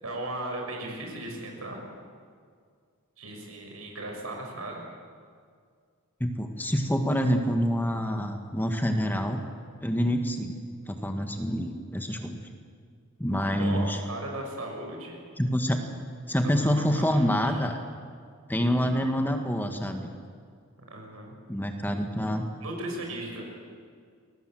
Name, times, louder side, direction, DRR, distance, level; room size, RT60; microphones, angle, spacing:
voice 1, 0.0-1.8 3.2-4.8 13.6-15.2 16.6-17.6 20.9-21.4 22.6-23.6, right 1 dB, 75° right, 1 dB, 6.4 m, -37 dB
voice 2, 6.2-9.4 9.8-10.6 10.9-12.4 13.2-14.0 15.4-15.8 16.3-17.8 18.5-20.1 21.5-22.4, equal, 10° left, 5 dB, 1.7 m, -26 dB
29.0 x 21.0 x 7.7 m, 2.1 s
head